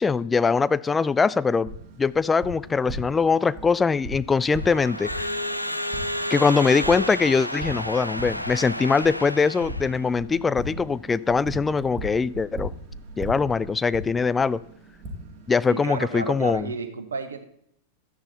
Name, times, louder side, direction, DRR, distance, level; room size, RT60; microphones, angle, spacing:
voice 1, 0.0-1.7 2.0-5.3 6.3-12.7 13.2-14.6 15.5-16.7, left 5 dB, 15° left, 16 dB, 0.4 m, -22 dB
Tap, 1.7-16.6, equal, 35° right, 3.0 m, -39 dB
Crowd / Alarm, 4.5-10.0, equal, 90° left, 0.6 m, -31 dB
sound 1, 8.5-8.7 9.0-9.3 9.6-9.9 10.2-10.4 10.7-11.0 11.3-12.1 12.3-12.6 12.9-13.2 13.5-13.8, right 2 dB, 85° right, 1.0 m, -41 dB
voice 2, 15.7-17.4, right 4 dB, 70° right, 9 dB, 1.3 m, -32 dB
12.5 x 10.0 x 4.2 m, 0.71 s
figure-of-eight pair, 90°, 0 cm